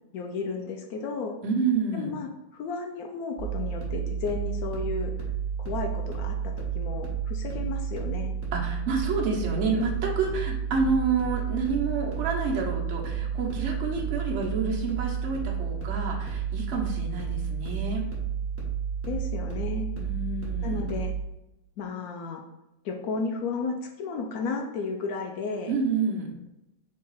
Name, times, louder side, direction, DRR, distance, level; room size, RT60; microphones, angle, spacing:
voice 1, 0.1-1.4 1.9-5.1 5.6-8.3 19.1-19.9 20.6-21.1 21.8-22.4 22.8-25.7, left 4 dB, 85° left, 2 dB, 0.8 m, -33 dB
voice 2, 1.4-2.1 8.5-18.1 19.9-20.9 25.7-26.3, right 4 dB, 50° right, -1 dB, 0.9 m, -29 dB
sound 1, 3.4-21.2, right 7 dB, 10° right, 0.9 m, -31 dB
4.6 x 2.3 x 4.6 m, 0.93 s
omnidirectional pair, 2.1 m